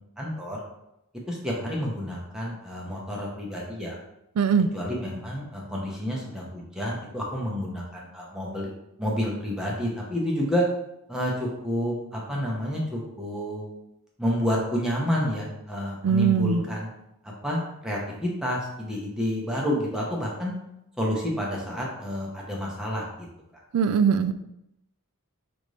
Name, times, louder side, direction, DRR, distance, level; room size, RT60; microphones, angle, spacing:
voice 1, 0.2-0.6 1.3-4.0 4.7-8.7 9.0-10.7 11.1-13.7 14.2-16.9 17.2-20.5 21.0-23.3, equal, 5° right, -4 dB, 0.8 m, -29 dB
voice 2, 4.4-4.7 16.0-16.6 23.7-24.3, right 6 dB, 75° right, 11 dB, 0.3 m, -21 dB
5.0 x 2.6 x 3.2 m, 0.84 s
head